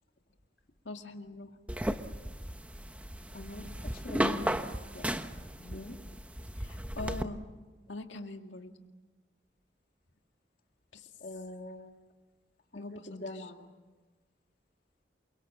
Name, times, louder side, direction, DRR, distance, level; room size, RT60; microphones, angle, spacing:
voice 1, 0.9-1.5 6.6-7.4 7.9-8.7 10.9-11.1 12.7-13.1, left 2 dB, 85° left, 5 dB, 2.1 m, -42 dB
sound 1, 1.7-7.2, equal, 5° right, 1.0 m, -35 dB
voice 2, 3.3-6.0 11.2-12.1 12.7-13.7, left 1 dB, 50° left, 4 dB, 2.2 m, -44 dB
28.5 x 24.0 x 7.5 m, 1.3 s
head